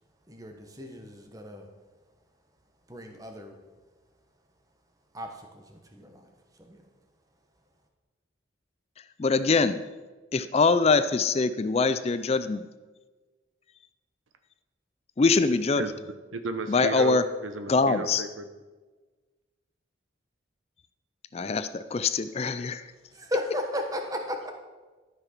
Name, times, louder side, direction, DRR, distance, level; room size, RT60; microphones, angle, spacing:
voice 1, 0.3-1.7 2.9-3.6 5.1-6.3 6.6-6.8 23.1-24.5, left 1 dB, 20° right, 4 dB, 1.1 m, -35 dB
voice 2, 9.2-9.8 10.3-12.7 15.2-15.9 16.7-17.2 17.7-18.3 21.3-22.9, left 4 dB, 30° left, 13 dB, 0.4 m, -23 dB
voice 3, 16.3-18.5, right 4 dB, 85° right, 8 dB, 0.9 m, -34 dB
13.0 x 5.9 x 5.9 m, 1.3 s
head